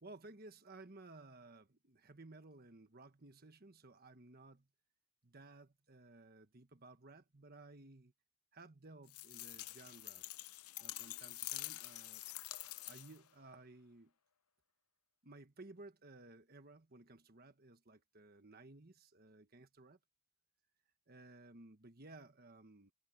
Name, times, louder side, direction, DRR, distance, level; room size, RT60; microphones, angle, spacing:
voice 1, 0.0-4.7 5.2-8.1 8.5-10.3 10.8-12.2 12.9-14.1 15.2-20.0 21.1-22.9, right 2 dB, 45° right, 1.4 m, -57 dB
sound 1, 9.1-13.3, left 16 dB, 80° left, 0.7 m, -47 dB
head